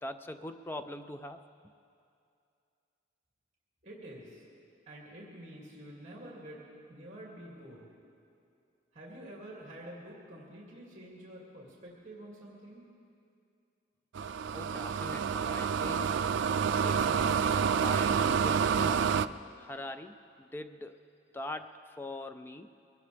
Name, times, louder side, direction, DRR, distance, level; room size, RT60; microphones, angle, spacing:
voice 1, 0.0-1.4 14.5-16.3 16.7-19.1 19.6-21.0 21.3-22.8, left 1 dB, 10° left, 9 dB, 0.3 m, -43 dB
voice 2, 3.8-4.4 4.9-7.9 8.9-12.9, right 1 dB, 35° right, -4 dB, 2.5 m, -48 dB
sound 1, 14.1-19.3, right 6 dB, 80° right, 0.3 m, -28 dB
22.5 x 17.5 x 3.4 m, 2.5 s
head